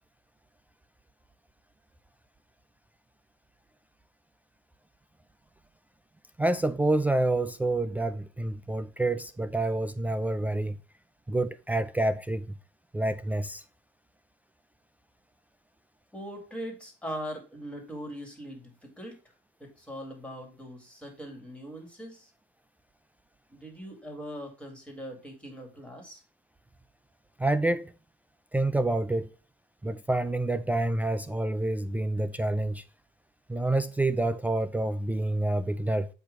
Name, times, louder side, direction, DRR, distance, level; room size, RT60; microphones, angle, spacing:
voice 1, 6.4-10.8 11.3-12.5 12.9-13.6 27.4-27.9 28.5-29.3 29.8-32.8 33.5-36.1, right 2 dB, 10° right, 0.3 m, -28 dB
voice 2, 16.1-19.2 19.6-22.3 23.5-26.2, equal, 5° left, 2.2 m, -41 dB
7.8 x 2.8 x 5.1 m
cardioid pair, 110°, 17 cm